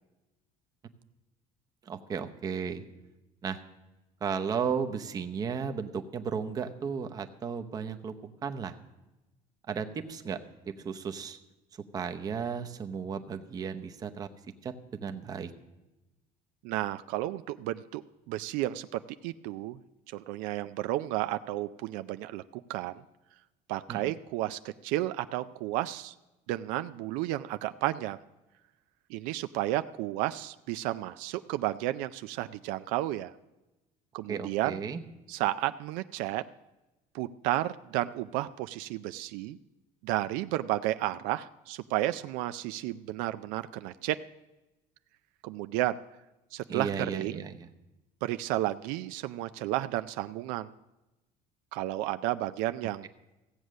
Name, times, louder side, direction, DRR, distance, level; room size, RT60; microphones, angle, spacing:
voice 1, 1.8-2.8 3.4-3.6 4.2-8.1 8.4-8.7 9.7-10.4 10.7-11.4 11.9-14.3 14.6-15.5 23.9-24.1 34.3-35.0 46.7-47.7, right 6 dB, 25° right, 7 dB, 0.8 m, -34 dB
voice 2, 16.6-19.8 20.1-22.9 23.7-26.1 26.5-28.2 29.1-33.3 34.1-34.8 35.3-36.4 37.1-39.6 40.0-44.2 45.4-46.0 46.5-47.5 48.2-50.7 51.7-53.1, right 15 dB, 75° right, 11 dB, 0.4 m, -32 dB
15.5 x 8.0 x 6.3 m, 1.0 s
cardioid pair, 145°, 14 cm